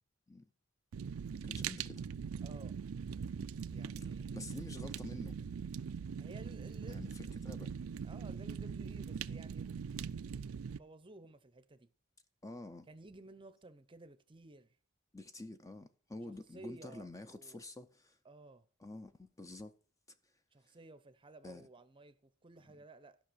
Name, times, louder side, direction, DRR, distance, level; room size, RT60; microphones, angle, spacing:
Fire, 0.9-10.8, right 6 dB, 80° right, 0.4 m, -41 dB
voice 1, 1.4-2.1 3.8-3.9 4.3-5.4 6.9-7.7 12.4-12.9 15.1-18.2 18.8-19.7 21.4-21.7, left 2 dB, 15° left, 0.5 m, -48 dB
voice 2, 2.4-2.8 3.7-4.5 6.2-7.5 8.0-9.7 10.7-11.9 12.9-14.8 16.3-17.6 18.2-18.7 20.5-23.2, right 2 dB, 25° right, 0.7 m, -55 dB
13.0 x 5.8 x 6.2 m
head